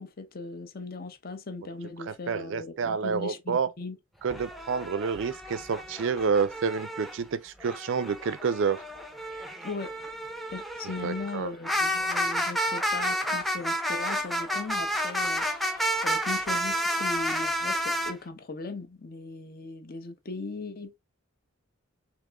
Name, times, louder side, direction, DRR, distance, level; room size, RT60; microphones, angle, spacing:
voice 1, 0.0-4.0 9.6-9.9 10.5-21.0, left 3 dB, 45° left, 0.7 m, -38 dB
voice 2, 2.1-3.7 4.2-8.8 10.8-11.5, right 5 dB, 60° right, 0.4 m, -29 dB
sound 1, 4.3-7.2 7.6-18.1, equal, ahead, 0.5 m, -31 dB
3.6 x 2.9 x 3.4 m
head